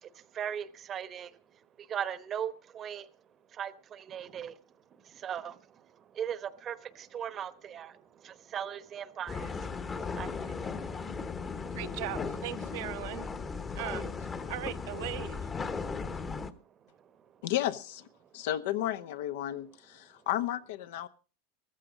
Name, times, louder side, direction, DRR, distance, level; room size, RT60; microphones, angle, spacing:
voice 1, 0.0-1.3 1.8-3.1 3.5-4.6 5.1-5.6 6.1-9.7 10.0-10.7, right 9 dB, 30° right, 1.0 m, -38 dB
sound 1, 9.3-16.5, left 5 dB, 20° left, 1.0 m, -37 dB
voice 2, 11.7-13.3 13.8-14.1 14.5-15.5, right 16 dB, 65° right, 0.9 m, -38 dB
voice 3, 17.4-18.1 18.3-21.1, left 13 dB, 75° left, 1.0 m, -33 dB
14.5 x 14.5 x 5.0 m
supercardioid pair, 140°, 0 cm